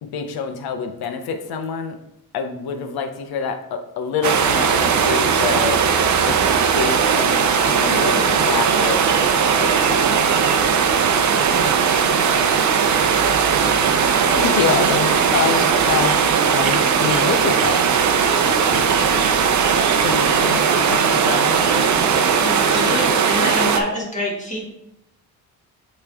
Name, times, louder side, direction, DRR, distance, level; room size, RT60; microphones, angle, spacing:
voice 1, 0.0-2.0 2.3-5.8 6.2-6.4 6.7-9.1 9.5-10.3 18.7-19.5 20.0-21.7, left 6 dB, 80° left, 6 dB, 0.9 m, -28 dB
sound 1, 4.2-23.8, right 6 dB, 50° right, 0.6 m, -18 dB
sound 2, 13.1-19.7, right 6 dB, 80° right, 0.9 m, -35 dB
voice 2, 14.3-16.2 16.5-17.8, left 8 dB, 45° left, 5 dB, 0.5 m, -23 dB
voice 3, 22.3-24.7, left 1 dB, 20° left, -3 dB, 1.6 m, -26 dB
8.5 x 3.2 x 3.5 m, 0.87 s
cardioid pair, 140°, 37 cm